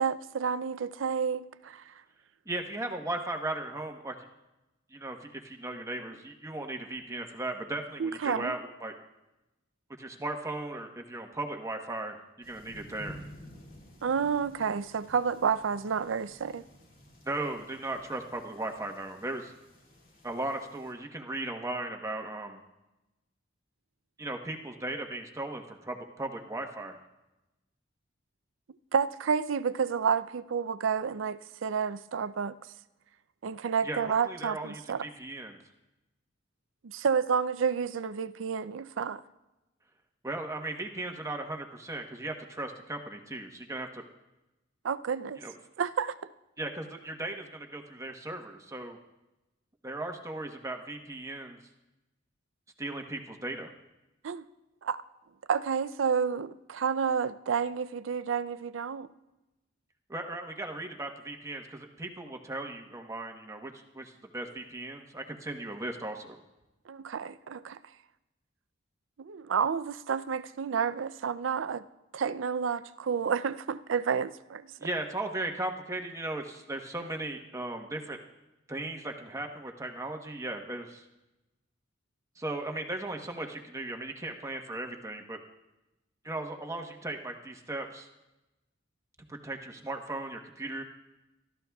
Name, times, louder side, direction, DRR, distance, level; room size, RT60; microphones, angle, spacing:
voice 1, 0.0-1.8 8.0-8.5 14.0-16.6 28.9-32.6 33.4-35.0 36.8-39.2 44.8-45.4 45.8-46.1 54.2-54.4 54.8-55.0 55.5-59.1 66.9-67.8 69.2-71.8 72.1-74.7, right 6 dB, 70° right, 14 dB, 0.5 m, -30 dB
voice 2, 2.5-4.1 4.9-8.9 10.0-13.2 17.2-19.5 20.2-22.6 24.2-27.0 33.8-35.6 40.2-44.0 45.4-45.5 46.6-49.0 49.8-51.6 52.8-53.7 60.1-66.4 74.8-78.2 78.7-81.0 82.4-85.4 86.2-88.1 89.3-90.8, right 2 dB, 15° right, 3 dB, 1.1 m, -37 dB
sound 1, 12.4-20.9, equal, 45° left, 2.4 m, -52 dB
25.0 x 13.5 x 2.3 m, 0.98 s
head